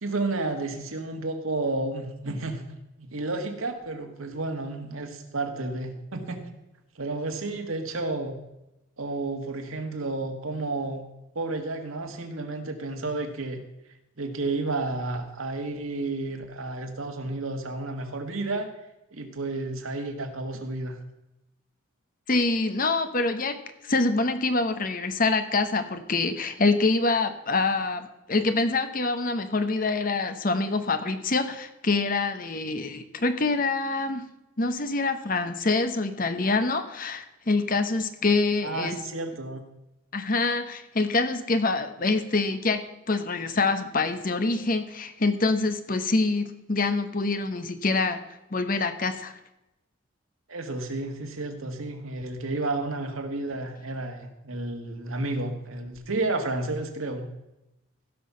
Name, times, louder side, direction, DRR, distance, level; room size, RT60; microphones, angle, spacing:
voice 1, 0.0-6.4 6.9-8.4 9.0-11.0 11.3-13.6 14.2-18.7 19.1-21.0 38.6-39.6 50.5-57.3, right 2 dB, 90° right, 5 dB, 1.7 m, -31 dB
voice 2, 22.3-23.6 23.8-34.2 34.6-39.0 40.1-42.8 43.1-48.2 48.5-49.3, left 3 dB, 40° left, 9 dB, 0.9 m, -25 dB
15.5 x 6.2 x 5.6 m, 0.92 s
head